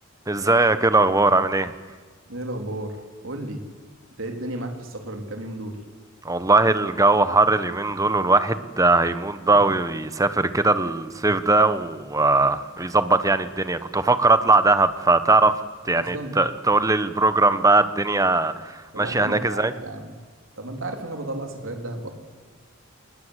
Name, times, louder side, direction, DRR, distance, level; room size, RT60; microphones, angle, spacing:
voice 1, 0.3-1.7 6.2-15.6 15.8-19.7, right 3 dB, 15° right, 12 dB, 1.1 m, -20 dB
voice 2, 2.3-3.0 3.2-3.6 4.2-5.8 15.9-16.4 18.9-20.1 20.6-22.1, right 1 dB, 70° right, 4 dB, 3.7 m, -33 dB
28.0 x 20.5 x 8.2 m, 1.4 s
head